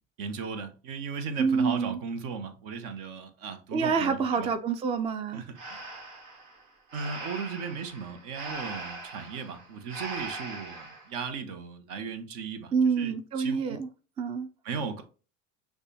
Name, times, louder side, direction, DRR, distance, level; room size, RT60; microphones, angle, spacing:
voice 1, 0.2-4.5 5.3-5.8 6.9-13.8 14.6-15.0, right 5 dB, 55° right, 1.0 m, -37 dB
voice 2, 1.4-2.0 3.7-5.4 12.7-13.9 14.2-14.5, right 5 dB, 15° right, 0.3 m, -27 dB
Breathing, 5.6-11.1, right 2 dB, 70° right, 1.5 m, -41 dB
6.4 x 2.4 x 3.2 m
hypercardioid pair, 80°, 39 cm